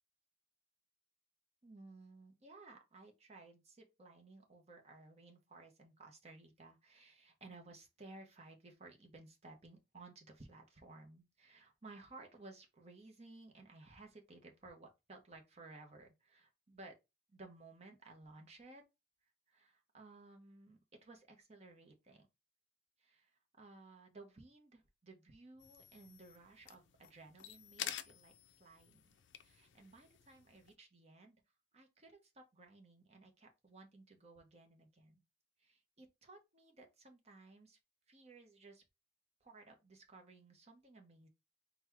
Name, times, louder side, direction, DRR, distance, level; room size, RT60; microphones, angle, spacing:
voice 1, 1.6-16.9 17.3-18.8 19.5-22.3 23.0-31.4 31.7-35.2 35.6-37.8 38.1-38.8 39.4-41.3, right 3 dB, 35° right, 1.0 m, -58 dB
sound 1, 25.6-30.7, left 10 dB, 75° left, 0.4 m, -50 dB
4.1 x 2.3 x 4.4 m
head